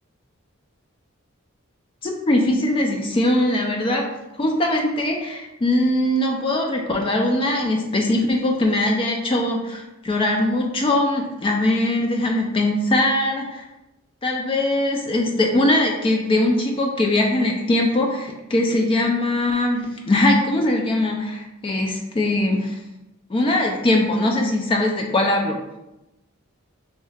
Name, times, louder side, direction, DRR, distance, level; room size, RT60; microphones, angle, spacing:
voice 1, 2.0-4.1 4.4-13.6 14.2-22.8 23.3-25.6, left 1 dB, 25° left, 2 dB, 0.3 m, -21 dB
3.1 x 2.3 x 3.2 m, 0.95 s
head